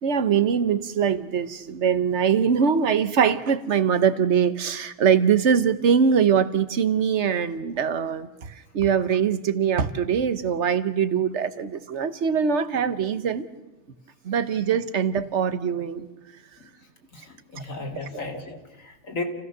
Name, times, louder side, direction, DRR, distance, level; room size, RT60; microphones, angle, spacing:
voice 1, 0.0-13.5 14.2-16.1, right 7 dB, 60° right, 1.3 m, -22 dB
voice 2, 17.1-19.2, left 3 dB, 80° left, 2.7 m, -35 dB
28.5 x 16.5 x 6.7 m
omnidirectional pair, 1.3 m